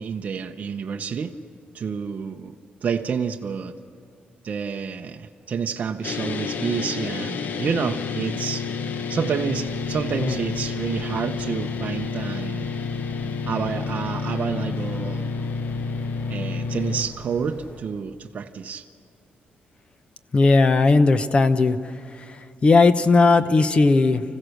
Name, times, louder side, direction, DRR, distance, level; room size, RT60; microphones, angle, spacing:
voice 1, 0.0-1.3 1.7-2.6 2.8-3.7 4.4-8.6 9.1-12.7 13.5-15.5 16.3-18.8, right 6 dB, 45° right, 4 dB, 0.8 m, -29 dB
sound 1, 6.0-17.0, left 5 dB, 60° left, 1.0 m, -29 dB
sound 2, 9.5-17.8, left 1 dB, 80° left, 4.8 m, -44 dB
voice 2, 20.3-21.8 22.6-24.2, left 3 dB, 35° left, 11 dB, 0.8 m, -17 dB
25.5 x 15.5 x 6.5 m, 2.5 s
cardioid pair, 135°, 3 cm